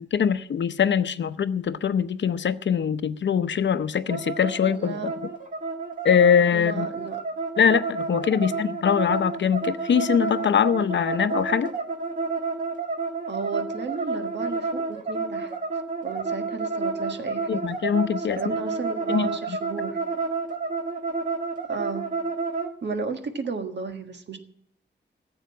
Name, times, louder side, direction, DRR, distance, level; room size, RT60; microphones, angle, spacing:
voice 1, 0.0-5.1 6.0-6.9 7.6-11.7 17.5-18.4 19.1-19.3, left 7 dB, 75° left, 0.7 m, -22 dB
sound 1, 4.1-22.7, right 4 dB, 45° right, 1.7 m, -30 dB
voice 2, 4.7-5.1 6.5-7.2 8.4-8.5 13.3-15.5 16.0-17.7 18.2-20.0 21.7-22.0 22.8-24.4, right 4 dB, 70° right, 1.6 m, -33 dB
15.0 x 8.0 x 7.4 m
wide cardioid pair, 150°, 19 cm